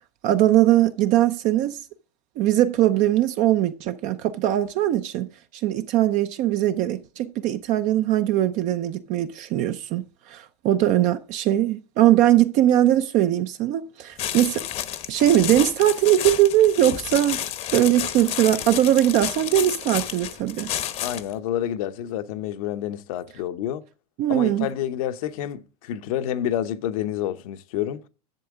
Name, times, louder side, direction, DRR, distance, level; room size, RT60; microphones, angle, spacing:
voice 1, 0.2-1.8 2.4-5.3 5.6-14.6 15.1-17.4 17.7-20.7 24.2-24.7, right 13 dB, 40° right, 0.6 m, -20 dB
sound 1, 14.2-21.3, left 11 dB, 35° left, 0.9 m, -30 dB
voice 2, 21.0-23.8 24.3-28.0, left 11 dB, 65° left, 0.9 m, -28 dB
11.0 x 7.1 x 3.6 m
supercardioid pair, 130°, 20 cm